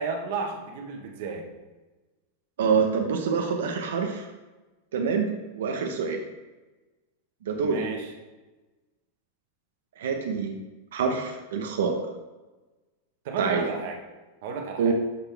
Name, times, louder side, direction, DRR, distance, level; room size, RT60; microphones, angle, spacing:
voice 1, 0.0-1.4 7.6-8.1 13.2-14.0 14.4-14.9, right 4 dB, 50° right, 2 dB, 1.2 m, -32 dB
voice 2, 2.6-4.3 4.9-5.3 5.5-6.2 7.5-7.8 10.0-10.6 10.9-11.9 13.4-13.7 14.8-14.9, right 5 dB, 85° right, 3 dB, 0.9 m, -26 dB
11.5 x 4.2 x 3.4 m, 1.2 s
supercardioid pair, 175°, 0 cm